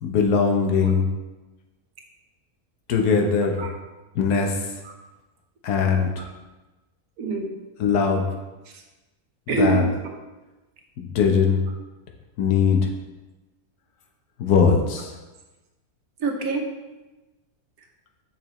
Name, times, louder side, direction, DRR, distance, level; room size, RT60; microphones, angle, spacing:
voice 1, 0.0-1.0 2.9-3.6 4.1-4.7 5.6-6.3 7.8-8.3 9.6-9.8 11.0-11.6 12.4-12.9 14.4-15.1, left 6 dB, 85° left, 2 dB, 1.4 m, -20 dB
voice 2, 7.2-7.6 8.7-8.8 9.5-10.1 16.2-16.8, right 4 dB, 75° right, 2 dB, 1.4 m, -26 dB
6.6 x 6.0 x 3.1 m, 1.1 s
omnidirectional pair, 1.6 m